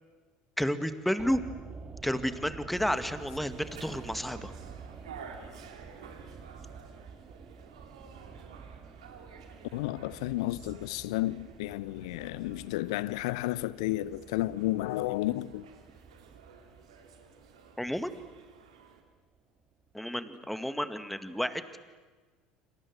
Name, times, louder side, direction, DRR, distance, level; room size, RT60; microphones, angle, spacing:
voice 1, 0.6-1.4 2.0-4.5 17.8-18.1 19.9-21.6, equal, 5° left, 2.1 m, -31 dB
sound 1, 1.2-19.4 19.6-19.7, right 5 dB, 35° right, 2.6 m, -49 dB
sound 2, 2.7-19.0, right 6 dB, 80° right, 3.4 m, -53 dB
voice 2, 9.7-15.7, left 17 dB, 70° left, 0.8 m, -32 dB
28.0 x 26.5 x 8.0 m
hypercardioid pair, 70°, 3 cm